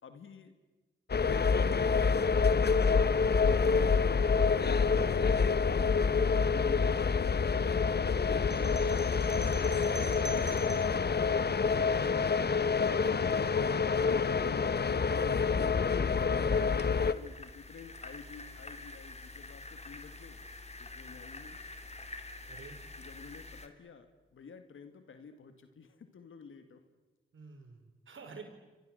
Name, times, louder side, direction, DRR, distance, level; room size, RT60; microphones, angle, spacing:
voice 1, 0.0-0.5 1.3-1.9 3.6-5.7 6.1-7.1 7.4-10.8 12.9-20.4 20.8-21.6 23.0-26.8, left 5 dB, 80° left, 8 dB, 2.1 m, -50 dB
sound 1, 1.1-17.1, left 5 dB, 55° left, 1.2 m, -27 dB
sound 2, 8.5-11.0, right 2 dB, 60° right, 5.5 m, -45 dB
voice 2, 11.8-12.3 22.5-22.8 27.3-28.4, right 4 dB, 75° right, 5 dB, 5.3 m, -50 dB
sound 3, 16.4-23.7, left 2 dB, 30° left, 3.1 m, -47 dB
29.0 x 25.0 x 8.0 m, 1.2 s
cardioid pair, 45°, 20 cm